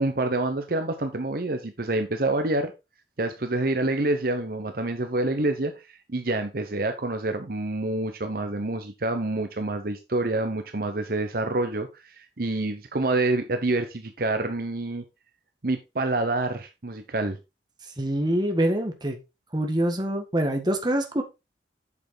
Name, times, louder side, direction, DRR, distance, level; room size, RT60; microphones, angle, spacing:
voice 1, 0.0-2.7 3.2-15.0 15.6-17.4, right 2 dB, 55° right, 0.9 m, -27 dB
voice 2, 18.0-19.2 19.5-21.2, right 1 dB, 25° right, 1.7 m, -25 dB
8.4 x 6.8 x 3.9 m
head